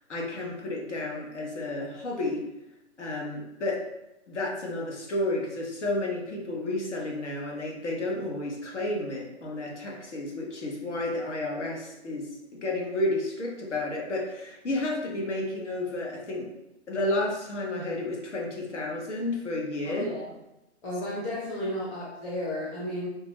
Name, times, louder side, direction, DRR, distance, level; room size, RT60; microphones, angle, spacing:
voice 1, 0.1-2.4 3.0-3.8 4.3-12.3 12.6-16.5 16.9-20.1, left 2 dB, 80° left, -1 dB, 1.3 m, -31 dB
voice 2, 19.8-20.2 20.8-23.1, left 1 dB, 20° left, -6 dB, 0.8 m, -33 dB
5.1 x 2.5 x 3.2 m, 0.91 s
hypercardioid pair, 135°, 35 cm